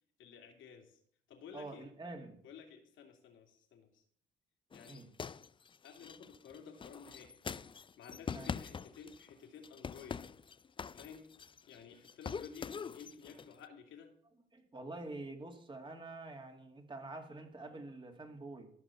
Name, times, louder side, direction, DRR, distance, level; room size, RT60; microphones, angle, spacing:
voice 1, 0.2-1.0 1.3-1.9 2.4-4.0 4.7-5.0 5.8-7.4 8.0-10.2 10.9-11.2 11.7-14.1, left 6 dB, 80° left, 3 dB, 2.7 m, -53 dB
voice 2, 1.5-2.4 4.9-5.1 8.3-8.5 14.5-18.7, right 2 dB, 25° right, 5 dB, 2.4 m, -47 dB
sound 1, 4.7-9.3 9.6-11.8 12.0-13.5, left 6 dB, 25° left, 0.4 m, -44 dB
14.5 x 6.2 x 7.0 m, 0.63 s
cardioid pair, 90°, 20 cm